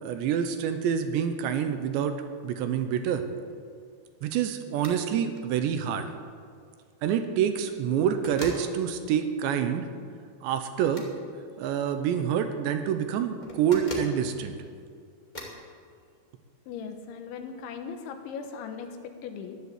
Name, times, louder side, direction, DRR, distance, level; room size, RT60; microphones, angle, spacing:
voice 1, 0.0-2.2 2.4-3.2 4.2-6.1 7.0-9.9 10.4-11.0 11.6-14.6, right 8 dB, 80° right, 8 dB, 3.1 m, -27 dB
sound 1, 4.8-5.0 5.4-5.5 7.4-7.8 8.2-8.7 10.8-11.1 13.4-14.2 15.3-15.6, left 2 dB, 35° left, 0.6 m, -39 dB
voice 2, 16.7-19.6, left 6 dB, 80° left, 7 dB, 3.5 m, -38 dB
15.0 x 11.0 x 8.3 m, 2.2 s
omnidirectional pair, 5.3 m